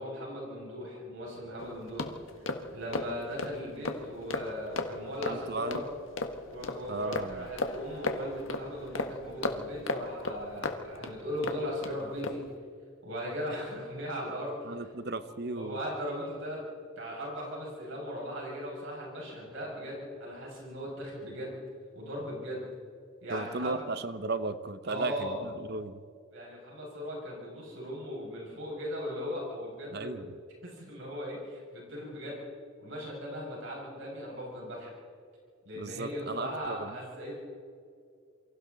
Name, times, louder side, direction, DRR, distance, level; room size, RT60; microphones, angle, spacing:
voice 1, 0.0-2.1 2.3-5.8 6.5-12.4 13.0-14.6 15.5-16.6 17.0-21.6 21.9-22.7 23.2-23.8 24.8-25.4 26.3-30.1 30.6-32.4 32.8-34.9 35.6-37.3, equal, 70° right, -3 dB, 6.8 m, -38 dB
sound 1, 1.6-11.9 12.2-12.5, left 2 dB, 75° left, 1.6 m, -36 dB
voice 2, 5.3-5.8 6.9-7.5 14.6-15.8 23.3-26.1 29.9-30.4 35.7-37.0, right 3 dB, 50° right, 12 dB, 1.0 m, -35 dB
28.0 x 24.5 x 4.1 m, 2.3 s
head